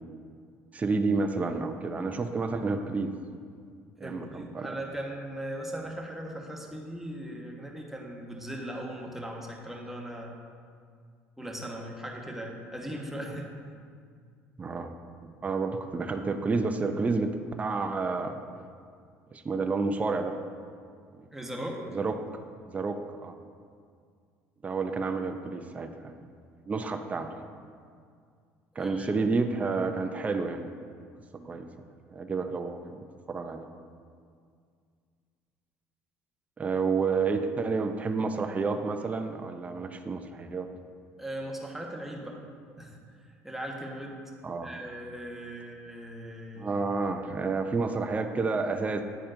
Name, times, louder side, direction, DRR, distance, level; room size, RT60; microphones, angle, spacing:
voice 1, 0.7-3.2 4.0-4.7 14.6-14.9 15.4-17.3 17.6-18.4 19.3-20.4 21.2-21.3 21.9-22.1 22.7-23.4 24.6-26.2 26.7-27.3 28.8-30.7 31.4-31.7 32.1-33.0 33.3-33.7 36.6-40.7 44.4-44.7 46.6-49.0, right 4 dB, 25° right, 6 dB, 0.4 m, -30 dB
voice 2, 4.0-10.3 11.4-13.5 21.3-22.0 28.7-29.2 31.3-31.5 41.2-42.4 42.8-43.0 43.4-44.2 44.6-46.7, right 1 dB, 5° right, -1 dB, 1.1 m, -38 dB
9.9 x 4.2 x 2.5 m, 2.1 s
supercardioid pair, 80°, 6 cm